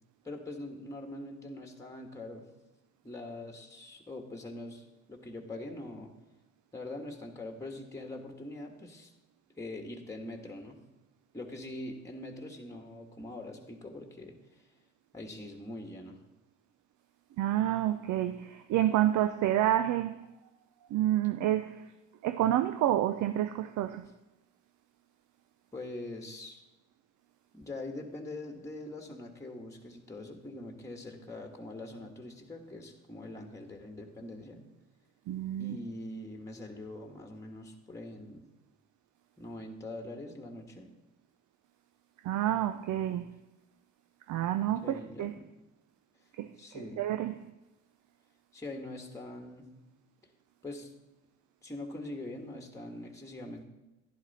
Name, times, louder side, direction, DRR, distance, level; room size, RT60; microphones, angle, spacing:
voice 1, 0.2-2.5 3.0-4.8 5.1-6.1 6.7-9.1 9.6-10.8 11.3-14.7 15.1-16.2 25.7-26.6 27.5-34.6 35.6-38.4 39.4-40.9 44.8-45.5 46.6-47.0 48.5-49.7 50.6-50.9 51.6-53.7, left 2 dB, 10° left, 1.5 m, -43 dB
voice 2, 17.4-20.2 20.9-21.9 22.2-24.1 35.3-35.8 42.2-43.3 44.3-45.3 46.4-47.5, right 12 dB, 75° right, 0.5 m, -29 dB
11.0 x 11.0 x 4.2 m
cardioid pair, 90°, 30 cm